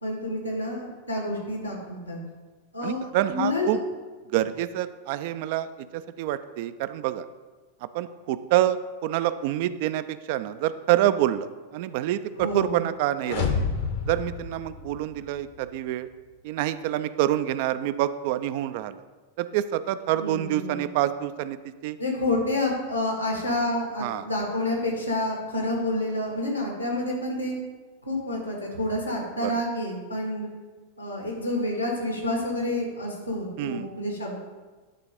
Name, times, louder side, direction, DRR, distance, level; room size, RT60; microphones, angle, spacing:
voice 1, 0.0-2.2 2.7-3.0 3.3-3.7 12.4-12.9 20.2-20.9 22.0-27.6 28.0-30.5 31.0-34.4, left 1 dB, 85° left, 0 dB, 1.7 m, -29 dB
voice 2, 2.8-3.8 4.3-7.2 7.9-13.5 14.1-16.1 16.4-19.0 19.4-21.6 21.8-22.0 24.0-24.3 29.4-29.5 33.6-33.9, right 13 dB, 50° right, 13 dB, 0.3 m, -27 dB
sound 1, 13.2-15.4, left 5 dB, 55° left, 0.9 m, -29 dB
9.7 x 3.7 x 5.1 m, 1.3 s
figure-of-eight pair, 90°, 0 cm